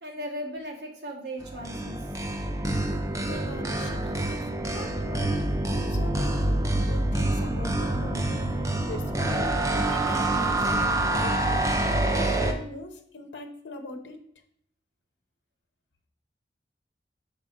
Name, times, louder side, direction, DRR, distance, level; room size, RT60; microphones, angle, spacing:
voice 1, 0.0-2.1, equal, 70° right, 0 dB, 1.5 m, -37 dB
sound 1, 1.4-12.5, right 1 dB, 15° right, 0.6 m, -26 dB
voice 2, 3.3-5.3 5.9-8.2 8.6-10.7 11.1-14.2, left 2 dB, 90° left, 4 dB, 1.0 m, -41 dB
6.1 x 5.3 x 4.1 m, 0.65 s
head